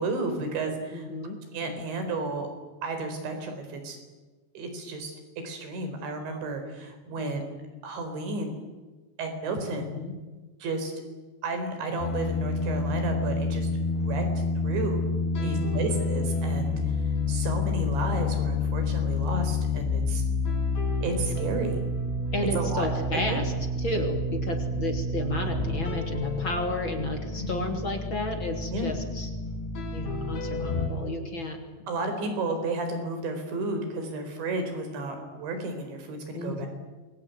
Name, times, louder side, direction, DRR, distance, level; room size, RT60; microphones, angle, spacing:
voice 1, 0.0-1.1 1.5-2.5 2.8-4.0 4.5-5.1 5.4-7.5 7.8-8.6 9.2-9.9 10.6-10.9 11.4-14.2 14.6-15.0 15.4-16.7 17.0-20.3 21.0-21.8 22.5-22.9 23.1-23.4 27.4-27.7 28.7-28.9 31.9-36.7, right 3 dB, 85° right, 6 dB, 6.7 m, -32 dB
voice 2, 0.9-1.4 7.2-7.4 9.8-10.2 15.3-15.9 22.3-23.5 23.8-29.3 29.9-31.6 36.3-36.7, left 2 dB, 30° left, 4 dB, 3.2 m, -32 dB
sound 1, 12.0-30.9, left 3 dB, 80° left, 8.2 m, -29 dB
27.0 x 22.5 x 9.4 m, 1.3 s
omnidirectional pair, 5.1 m